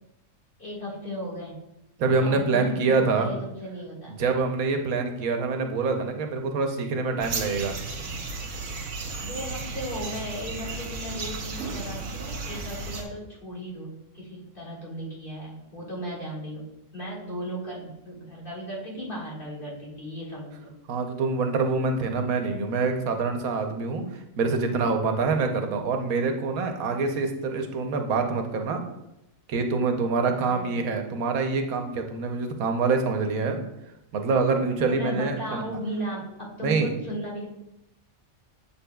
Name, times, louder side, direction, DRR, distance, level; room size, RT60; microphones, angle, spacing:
voice 1, 0.6-1.6 2.2-4.2 9.2-16.6 16.9-20.7 30.4-31.0 34.9-37.5, equal, 40° left, -5 dB, 2.1 m, -36 dB
voice 2, 2.0-3.3 4.1-7.7 20.9-28.8 29.5-33.6 34.1-35.6 36.6-36.9, right 4 dB, 85° right, 5 dB, 1.2 m, -25 dB
sound 1, 7.2-13.0, right 4 dB, 65° right, 1.2 m, -34 dB
7.5 x 6.9 x 2.3 m, 0.87 s
omnidirectional pair, 1.4 m